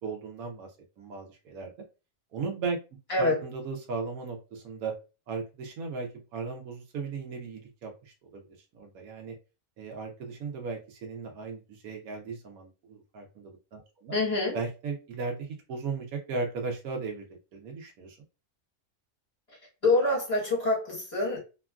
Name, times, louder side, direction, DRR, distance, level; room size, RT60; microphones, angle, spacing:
voice 1, 0.0-1.7 2.3-2.8 3.2-4.9 5.3-8.4 8.7-9.4 9.8-14.2 14.5-17.3 17.5-18.2, right 4 dB, 90° right, 2 dB, 1.1 m, -36 dB
voice 2, 14.1-14.6 19.8-21.4, left 2 dB, 25° left, -3 dB, 1.3 m, -25 dB
2.9 x 2.3 x 2.3 m, 0.30 s
omnidirectional pair, 1.4 m